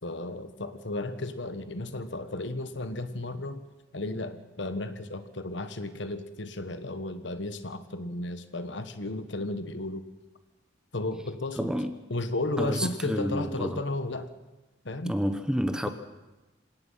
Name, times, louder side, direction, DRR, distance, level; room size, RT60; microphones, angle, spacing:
voice 1, 0.0-3.6 3.9-10.0 10.9-11.7 12.1-14.3 14.8-15.2 15.8-15.9, left 2 dB, 70° left, 10 dB, 1.4 m, -34 dB
voice 2, 11.6-12.0 12.6-13.8 15.0-15.9, equal, 5° right, 9 dB, 1.0 m, -29 dB
26.5 x 17.5 x 5.7 m, 1.1 s
head